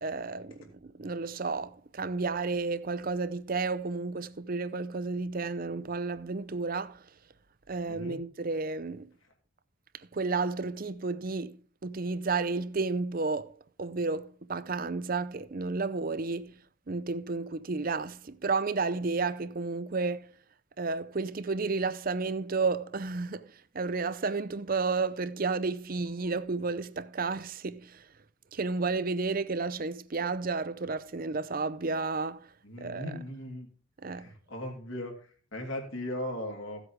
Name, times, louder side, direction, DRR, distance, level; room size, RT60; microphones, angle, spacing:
voice 1, 0.0-7.1 7.7-9.1 9.9-16.6 16.9-20.3 20.8-28.1 28.5-32.5 32.8-33.1 34.0-34.3, right 4 dB, 40° right, 0.6 m, -32 dB
voice 2, 7.9-8.2 32.6-33.7 34.2-36.8, left 1 dB, 70° left, 3.0 m, -38 dB
16.0 x 8.1 x 3.6 m
head